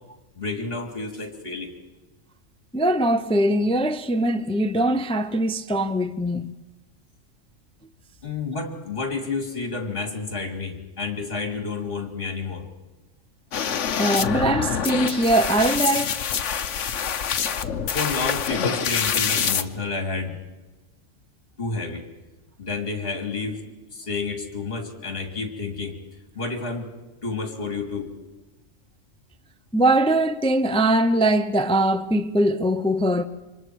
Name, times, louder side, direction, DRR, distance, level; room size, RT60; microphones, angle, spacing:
voice 1, 0.4-1.7 8.2-12.7 17.9-20.4 21.6-22.0 22.6-25.9 26.3-26.9 27.2-28.1, left 4 dB, 45° left, 3.0 m, -30 dB
voice 2, 2.7-6.5 14.0-16.1 29.7-33.3, right 1 dB, 5° left, 0.5 m, -21 dB
sound 1, 13.5-19.6, left 7 dB, 65° left, 1.2 m, -25 dB
29.0 x 25.5 x 4.7 m
omnidirectional pair, 1.4 m